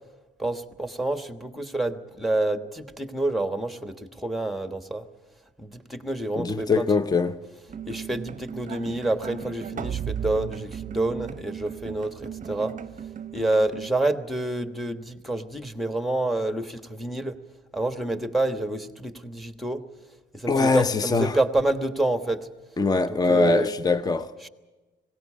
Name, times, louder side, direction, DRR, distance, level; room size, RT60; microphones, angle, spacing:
voice 1, 0.4-5.1 5.6-6.9 7.9-12.7 13.3-17.4 17.7-19.8 20.3-22.5 23.1-23.7 24.4-24.5, right 2 dB, ahead, 1.3 m, -28 dB
voice 2, 6.4-7.4 20.5-21.3 22.8-24.3, left 4 dB, 20° left, 0.7 m, -22 dB
sound 1, 7.7-13.9, right 9 dB, 40° right, 0.7 m, -36 dB
19.5 x 17.5 x 8.5 m
cardioid pair, 90°, 20 cm